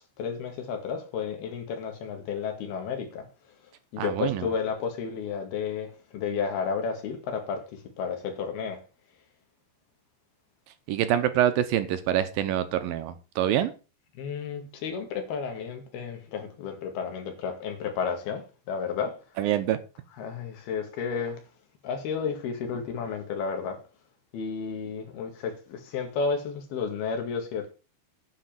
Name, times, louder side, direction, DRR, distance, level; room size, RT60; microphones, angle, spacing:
voice 1, 0.0-3.3 3.9-7.7 8.0-8.8 14.2-19.2 20.2-21.4 21.8-23.8 24.3-27.7, left 6 dB, 75° left, 4.0 m, -32 dB
voice 2, 4.0-4.5 10.9-13.7 19.4-19.8, right 11 dB, 75° right, 2.4 m, -25 dB
9.9 x 5.2 x 7.6 m
omnidirectional pair, 4.5 m